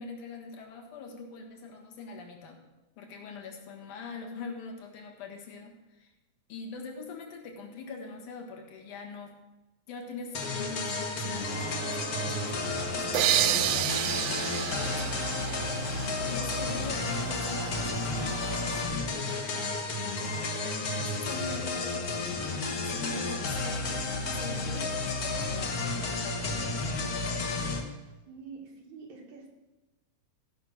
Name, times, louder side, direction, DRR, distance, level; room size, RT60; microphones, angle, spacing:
voice 1, 0.0-2.6 3.0-6.1 6.5-9.4 9.9-15.6 16.2-19.7 20.2-27.0, left 4 dB, 85° left, 1 dB, 3.0 m, -43 dB
sound 1, 10.3-27.8, left 3 dB, 60° left, 0.9 m, -32 dB
sound 2, 11.4-18.9, right 3 dB, 45° right, 1.0 m, -41 dB
sound 3, 13.1-16.7, right 13 dB, 90° right, 1.4 m, -29 dB
voice 2, 28.3-29.5, right 5 dB, 70° right, -1 dB, 3.2 m, -46 dB
15.0 x 5.4 x 6.1 m, 1.1 s
omnidirectional pair, 3.5 m